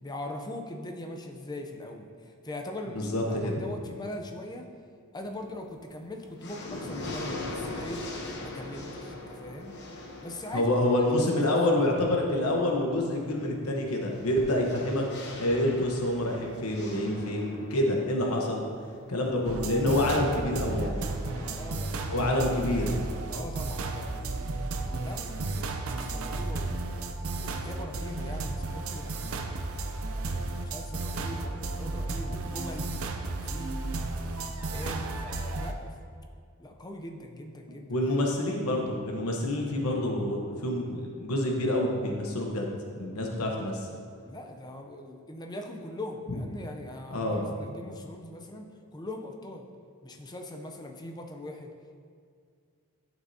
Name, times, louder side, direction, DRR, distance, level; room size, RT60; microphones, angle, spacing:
voice 1, 0.0-4.7 5.1-8.0 8.4-9.7 10.2-11.0 11.5-11.6 19.8-20.3 21.4-24.5 24.8-27.0 27.4-29.8 30.3-32.9 33.2-33.8 34.2-34.4 34.7-35.9 36.6-38.2 44.2-49.7 50.0-51.7, left 1 dB, 20° left, 3 dB, 0.5 m, -41 dB
voice 2, 2.9-3.5 10.5-15.0 15.4-18.6 19.1-21.0 22.1-22.9 37.9-42.7 42.9-43.9 47.1-47.4, left 1 dB, 80° left, 0 dB, 1.1 m, -27 dB
sound 1, 5.2-5.7 6.1-21.5, left 2 dB, 55° left, 0.9 m, -42 dB
sound 2, 19.4-35.7, right 2 dB, 70° right, 0.6 m, -33 dB
10.5 x 6.1 x 2.8 m, 2.2 s
head